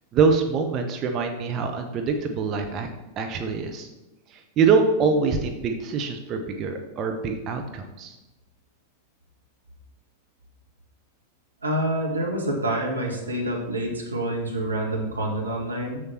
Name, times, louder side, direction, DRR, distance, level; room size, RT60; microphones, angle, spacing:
voice 1, 0.1-2.9 3.2-3.9 4.3-8.2, right 5 dB, 35° right, 4 dB, 0.9 m, -24 dB
voice 2, 11.6-16.0, right 1 dB, 80° right, 0 dB, 1.6 m, -27 dB
6.9 x 6.9 x 4.4 m, 1.1 s
figure-of-eight pair, 90°, 0 cm